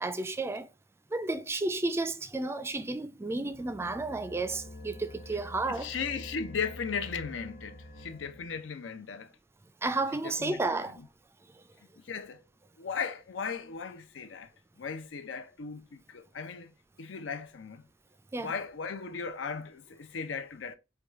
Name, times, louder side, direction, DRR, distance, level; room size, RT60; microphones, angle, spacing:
voice 1, 0.0-0.7 1.1-5.9 9.8-11.0 18.3-18.5, right 2 dB, 15° right, 0.3 m, -32 dB
sound 1, 3.5-8.6, left 1 dB, 45° left, 1.4 m, -47 dB
voice 2, 5.7-9.3 10.2-11.0 12.0-12.4 12.8-14.5 14.8-16.7 17.0-17.8 18.4-20.8, left 5 dB, 90° left, 0.6 m, -37 dB
4.7 x 2.3 x 3.5 m
head